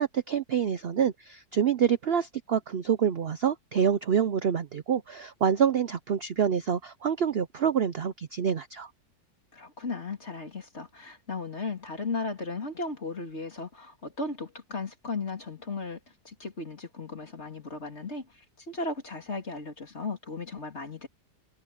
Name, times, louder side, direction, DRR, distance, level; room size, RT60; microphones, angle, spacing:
voice 1, 0.0-8.9, right 8 dB, 80° right, 0.5 m, -27 dB
voice 2, 9.5-16.0 16.2-21.1, left 3 dB, 40° left, 3.4 m, -36 dB
omnidirectional pair, 1.9 m